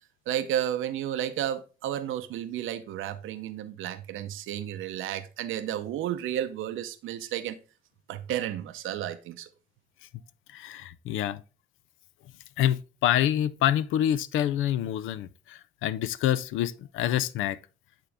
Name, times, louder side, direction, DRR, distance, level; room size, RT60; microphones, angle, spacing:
voice 1, 0.3-7.6 8.1-9.5, right 11 dB, 85° right, 0.7 m, -32 dB
voice 2, 10.5-11.4 12.6-17.6, left 11 dB, 90° left, 0.5 m, -27 dB
8.9 x 3.8 x 3.4 m
cardioid pair, 90°, 20 cm